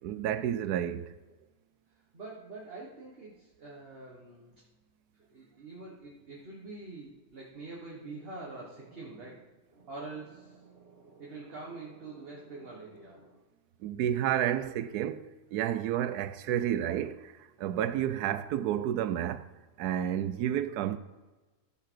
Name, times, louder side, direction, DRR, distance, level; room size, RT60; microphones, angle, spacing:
voice 1, 0.0-1.1 13.8-17.3 17.6-19.4 19.8-21.0, right 10 dB, 90° right, 1.1 m, -30 dB
voice 2, 2.1-4.5 5.3-13.4, right 3 dB, 40° right, 1.5 m, -45 dB
14.0 x 4.8 x 4.6 m
omnidirectional pair, 1.6 m